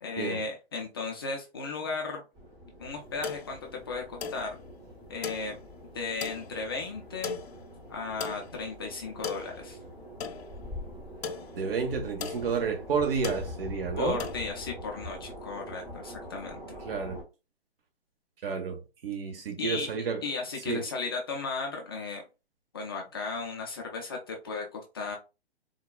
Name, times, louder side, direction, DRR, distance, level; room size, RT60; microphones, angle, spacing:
voice 1, 0.0-2.2 2.8-4.6 5.1-5.6 5.9-7.4 7.9-9.8 14.0-16.8 19.6-19.9 20.2-22.2 22.7-25.2, left 4 dB, 25° left, 0.4 m, -35 dB
sound 1, 2.3-17.2, equal, 25° right, 1.2 m, -44 dB
sound 2, 2.9-14.4, left 6 dB, 70° left, 0.7 m, -40 dB
voice 2, 11.6-14.2 16.8-17.2 18.4-20.2 20.7-20.8, right 5 dB, 60° right, 1.1 m, -30 dB
3.9 x 2.2 x 2.2 m
hypercardioid pair, 145°, 32 cm